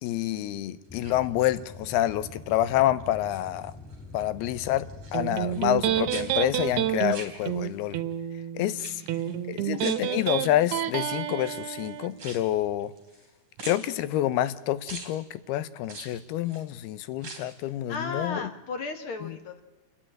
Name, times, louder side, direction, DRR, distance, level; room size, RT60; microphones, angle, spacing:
voice 1, 0.0-3.7 4.1-8.0 8.5-9.0 9.5-12.9 13.6-18.4 19.2-19.4, left 13 dB, 85° left, 15 dB, 2.8 m, -28 dB
sound 1, 0.8-1.8 2.3-2.7 3.0-4.0 4.3-5.8 6.1-7.9 8.7-9.3 9.8-10.6 11.3-13.3 13.6-14.5 14.9-15.1 15.8-16.7 17.1-17.6 18.0-18.1, right 3 dB, 35° right, 4.2 m, -44 dB
sound 2, 0.9-7.2, left 3 dB, 5° left, 1.9 m, -45 dB
Electric guitar, 5.1-12.1, right 12 dB, 85° right, 3.0 m, -29 dB
voice 2, 8.8-9.4 17.9-19.6, left 4 dB, 60° left, 7 dB, 1.4 m, -36 dB
29.5 x 10.5 x 8.9 m, 1.1 s
omnidirectional pair, 4.4 m